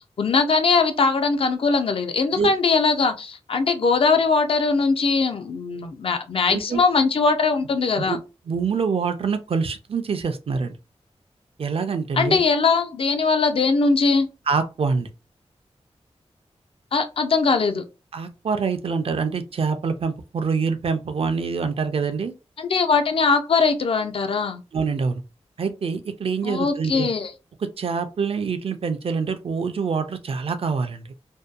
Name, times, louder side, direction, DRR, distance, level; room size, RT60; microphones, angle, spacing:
voice 1, 0.2-8.2 12.2-14.3 16.9-17.8 22.6-24.6 26.4-27.3, left 4 dB, 55° left, 0.4 m, -21 dB
voice 2, 6.5-6.8 8.0-8.2 8.5-10.7 11.6-12.4 14.5-15.1 18.1-22.3 24.7-25.2 25.6-27.1 27.8-31.0, right 5 dB, 55° right, 0.4 m, -25 dB
2.6 x 2.2 x 2.3 m
wide cardioid pair, 145°, 11 cm